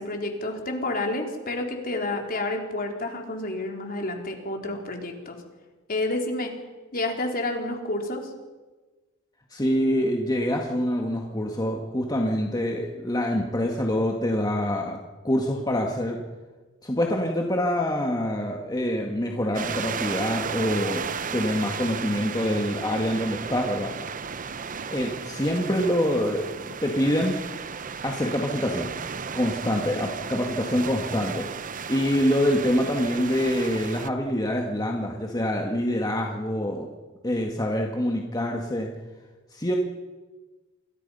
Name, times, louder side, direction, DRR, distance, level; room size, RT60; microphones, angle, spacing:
voice 1, 0.0-5.4 5.9-6.5 6.9-8.3, left 2 dB, 45° left, 2 dB, 3.8 m, -29 dB
voice 2, 9.5-15.0 15.2-16.2 16.8-21.1 21.3-23.9 24.9-27.4 28.0-28.9 29.3-31.5 31.9-36.9 37.2-38.9 39.5-39.8, equal, 20° left, 1 dB, 2.0 m, -25 dB
sound 1, 19.5-34.1, right 6 dB, 40° right, 0.8 m, -34 dB
28.5 x 22.5 x 5.7 m, 1.3 s
head